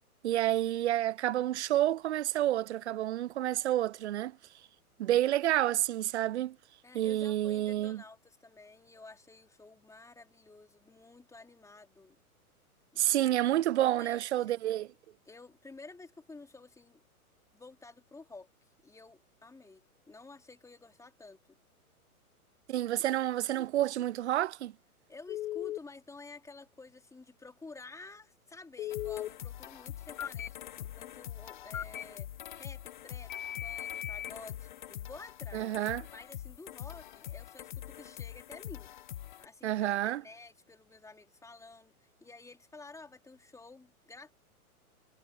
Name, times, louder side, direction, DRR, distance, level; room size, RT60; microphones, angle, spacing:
voice 1, 0.2-4.4 5.0-6.6 6.9-8.0 13.0-14.9 22.7-24.7 35.5-36.0 39.6-40.2, right 13 dB, 50° right, 0.4 m, -29 dB
voice 2, 6.8-12.2 12.9-13.1 14.0-14.6 15.3-17.0 17.5-18.5 18.8-21.6 23.0-23.1 25.1-32.3 32.5-33.3 33.6-35.7 36.1-38.9 39.4-44.3, left 3 dB, 5° left, 3.6 m, -52 dB
Telephone, 25.3-25.8 28.8-29.3 30.2-30.5 31.7-32.0 33.3-34.3, left 11 dB, 60° left, 1.8 m, -37 dB
sound 1, 28.9-39.5, left 12 dB, 35° left, 0.4 m, -44 dB
figure-of-eight pair, 110°, 44 cm